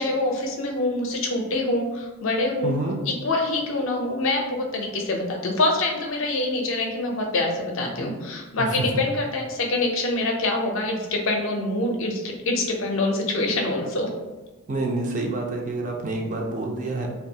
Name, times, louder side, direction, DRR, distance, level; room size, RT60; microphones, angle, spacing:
voice 1, 0.0-2.7 3.1-14.1, left 2 dB, 60° left, 1 dB, 0.5 m, -25 dB
voice 2, 2.6-3.0 8.6-8.9 14.7-17.1, right 2 dB, 35° right, 1 dB, 0.3 m, -28 dB
2.6 x 2.3 x 2.7 m, 1.2 s
head